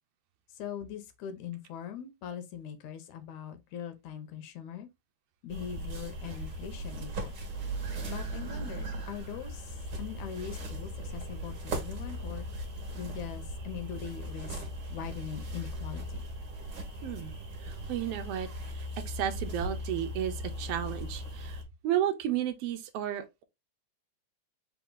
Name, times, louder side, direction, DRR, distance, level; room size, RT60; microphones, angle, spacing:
voice 1, 0.5-4.9 5.4-7.3 8.0-12.5 12.9-14.6 14.9-16.3, left 8 dB, 75° left, 1.9 m, -41 dB
sound 1, 5.5-21.6, right 1 dB, 45° right, 1.6 m, -38 dB
voice 2, 17.0-17.3 17.6-23.4, right 11 dB, 70° right, 1.5 m, -33 dB
5.0 x 2.8 x 3.8 m
omnidirectional pair, 3.5 m